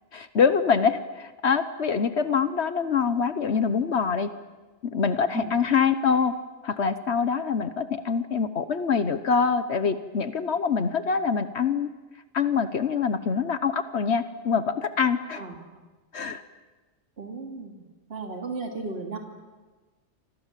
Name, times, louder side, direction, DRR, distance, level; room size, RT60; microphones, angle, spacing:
voice 1, 0.1-4.3 4.8-6.3 6.6-11.9 12.3-15.4 16.1-16.4, left 6 dB, 65° left, 11 dB, 1.3 m, -25 dB
voice 2, 17.2-17.8 18.1-19.2, right 3 dB, 55° right, 3 dB, 3.1 m, -35 dB
29.0 x 26.0 x 7.5 m, 1.3 s
omnidirectional pair, 1.2 m